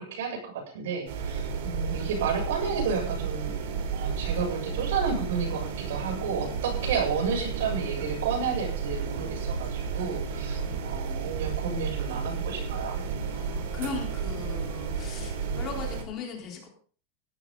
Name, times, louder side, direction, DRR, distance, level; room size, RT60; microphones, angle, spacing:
voice 1, 0.0-3.6 3.9-13.0, right 6 dB, 80° right, 2 dB, 7.6 m, -31 dB
sound 1, 1.1-16.0, right 5 dB, 55° right, 3.1 m, -32 dB
voice 2, 10.5-10.9 13.3-16.7, left 5 dB, 25° left, 1 dB, 3.9 m, -38 dB
16.5 x 13.0 x 4.0 m, 0.42 s
supercardioid pair, 180°, 0 cm